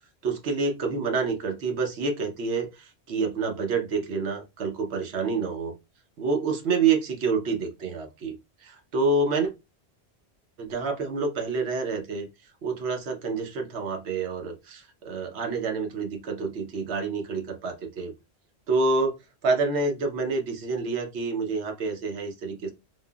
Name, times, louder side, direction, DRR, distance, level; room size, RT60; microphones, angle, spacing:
voice 1, 0.2-5.7 6.2-8.4 8.6-9.5 10.6-12.3 12.6-18.1 18.7-19.2 19.4-22.7, right 4 dB, 75° right, 1.0 m, -28 dB
3.4 x 2.0 x 2.3 m
omnidirectional pair, 1.1 m